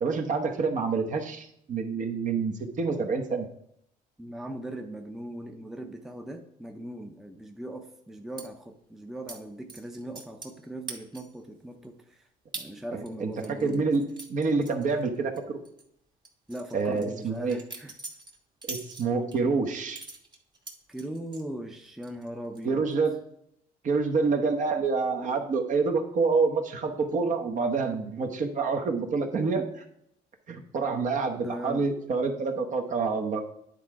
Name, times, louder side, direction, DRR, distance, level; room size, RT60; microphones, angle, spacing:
voice 1, 0.0-3.5 12.9-13.3 13.6-14.0 14.3-15.6 16.7-17.6 18.6-20.0 22.6-23.2 23.8-29.8 30.5-33.4, right 4 dB, 50° right, 4 dB, 1.0 m, -27 dB
voice 2, 4.2-12.3 12.5-13.9 16.5-18.0 20.9-22.9 31.4-31.9, right 1 dB, ahead, 4 dB, 0.7 m, -39 dB
sound 1, 8.4-8.5 9.3-9.4 9.7-10.6 10.9-11.4 11.8-11.9 12.5-12.7 13.1-15.4 15.6-15.8 16.2-19.4 19.9-21.4 21.8-22.3 22.5-22.9, right 3 dB, 25° right, 1.3 m, -42 dB
9.7 x 3.7 x 4.6 m, 0.73 s
cardioid pair, 110°, 17 cm